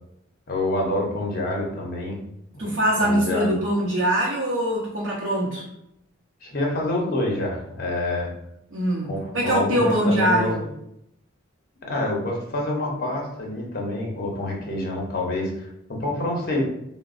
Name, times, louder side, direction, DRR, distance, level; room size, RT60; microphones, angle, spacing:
voice 1, 0.5-2.2 2.6-2.7 3.0-3.6 6.4-8.3 9.1-10.5 11.8-16.6, left 1 dB, 50° left, -1 dB, 0.7 m, -27 dB
voice 2, 2.6-5.6 8.7-10.7, equal, 65° right, -6 dB, 0.7 m, -23 dB
3.9 x 2.1 x 2.5 m, 0.79 s
head